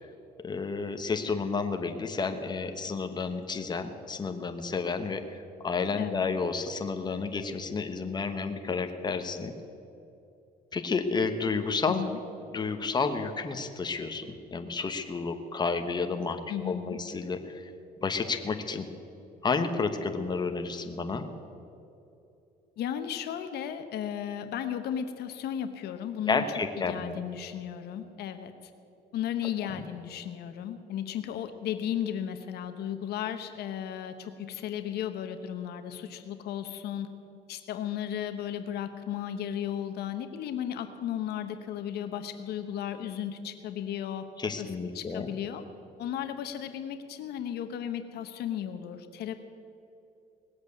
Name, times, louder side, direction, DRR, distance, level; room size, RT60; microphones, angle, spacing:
voice 1, 0.4-5.2 5.6-9.5 10.7-12.0 12.5-16.4 16.6-17.6 18.0-18.9 19.4-21.2 26.3-27.2 44.4-45.3, left 4 dB, 25° left, 7 dB, 1.2 m, -31 dB
voice 2, 6.0-6.3 11.9-12.2 16.5-17.0 22.8-26.4 26.7-28.7 29.1-37.1 37.5-44.3 44.6-44.7 44.9-45.6 46.0-49.3, left 10 dB, 70° left, 9 dB, 1.0 m, -35 dB
19.0 x 8.1 x 8.2 m, 2.8 s
cardioid pair, 110°, 17 cm